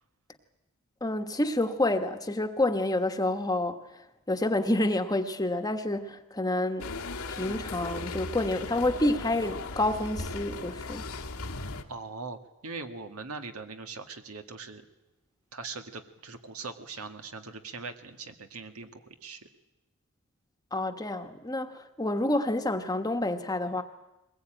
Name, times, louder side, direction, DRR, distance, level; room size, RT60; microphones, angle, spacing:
voice 1, 1.0-3.8 4.3-6.9 7.3-11.1 20.7-23.8, left 1 dB, 15° left, 1.3 m, -28 dB
sound 1, 6.8-11.8, left 3 dB, 90° left, 1.8 m, -37 dB
voice 2, 11.9-14.8 15.5-19.5, right 4 dB, 75° right, 1.9 m, -41 dB
22.0 x 20.0 x 9.1 m
head